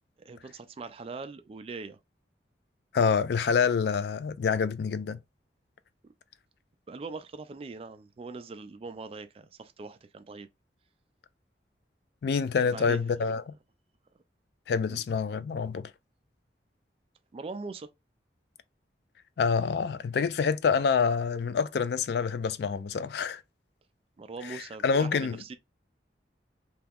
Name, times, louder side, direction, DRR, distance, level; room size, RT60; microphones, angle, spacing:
voice 1, 0.2-2.0 6.9-10.5 12.7-13.0 13.2-13.3 14.8-15.0 17.3-17.9 24.2-25.5, right 4 dB, 30° right, 0.3 m, -41 dB
voice 2, 2.9-5.2 12.2-13.4 14.7-15.9 19.4-23.4 24.4-25.4, left 5 dB, 65° left, 0.3 m, -27 dB
2.8 x 2.3 x 3.5 m
head